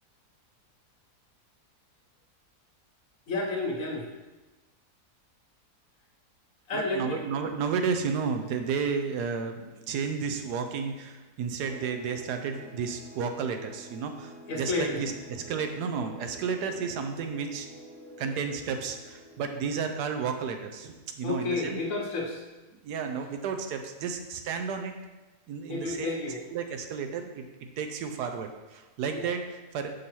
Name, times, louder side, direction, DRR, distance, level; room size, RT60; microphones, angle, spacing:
voice 1, 3.3-4.1 6.7-7.2 14.5-15.0 21.2-22.4 25.7-26.4 29.1-29.3, left 2 dB, 60° left, -1 dB, 1.3 m, -31 dB
voice 2, 6.7-17.7 18.2-21.8 22.8-24.9 25.5-26.1 26.5-27.4 27.8-29.9, right 6 dB, 85° right, 6 dB, 1.2 m, -32 dB
sound 1, 11.6-21.0, equal, 40° right, 0.5 m, -49 dB
6.4 x 5.5 x 3.0 m, 1.2 s
omnidirectional pair, 1.7 m